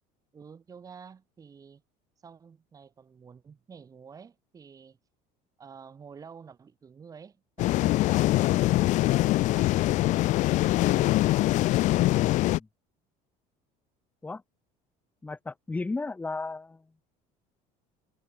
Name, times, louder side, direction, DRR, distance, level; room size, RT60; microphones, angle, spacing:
voice 1, 0.3-1.8 2.2-5.0 5.6-9.0 9.3-11.3, right 6 dB, 20° right, 3.5 m, -50 dB
sound 1, 7.6-12.6, left 17 dB, 50° left, 0.8 m, -23 dB
voice 2, 15.2-16.8, left 3 dB, 10° left, 1.3 m, -34 dB
cardioid pair, 160°, 16 cm